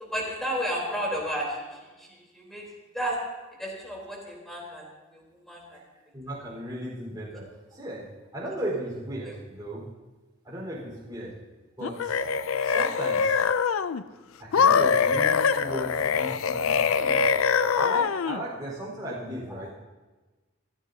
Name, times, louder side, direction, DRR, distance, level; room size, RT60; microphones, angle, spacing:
voice 1, 0.0-2.7 2.9-3.2 3.6-5.8 9.2-9.3 19.5-19.6, equal, ahead, -3 dB, 3.7 m, -33 dB
voice 2, 6.1-7.4 7.7-8.1 8.3-9.8 10.4-11.3 11.8-12.2 12.6-13.4 14.4-16.7 17.0-17.2 17.7-19.7, right 1 dB, 20° right, -5 dB, 4.5 m, -36 dB
sound 1, 11.8-14.0 14.5-18.4, left 6 dB, 85° left, 0.5 m, -23 dB
27.5 x 9.2 x 2.8 m, 1.2 s
head